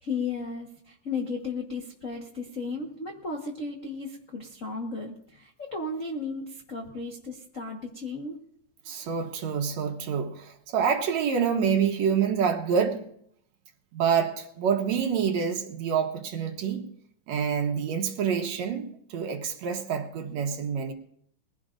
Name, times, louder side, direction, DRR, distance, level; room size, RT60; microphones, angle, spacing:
voice 1, 0.0-8.4, left 3 dB, 60° left, 1 dB, 0.8 m, -35 dB
voice 2, 8.9-13.0 13.9-16.9 17.3-20.9, right 7 dB, 65° right, 4 dB, 2.2 m, -27 dB
21.5 x 16.0 x 2.6 m, 0.68 s
omnidirectional pair, 3.6 m